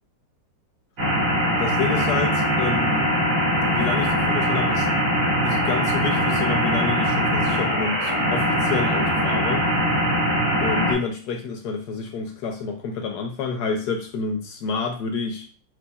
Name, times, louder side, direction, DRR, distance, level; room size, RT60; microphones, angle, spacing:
sound 1, 1.0-10.9, equal, 85° right, 3.2 m, -22 dB
voice 1, 1.6-3.1 3.7-4.9 5.4-9.7 10.6-15.5, left 4 dB, 70° left, 4 dB, 1.1 m, -29 dB
6.1 x 3.1 x 2.3 m, 0.41 s
omnidirectional pair, 2.0 m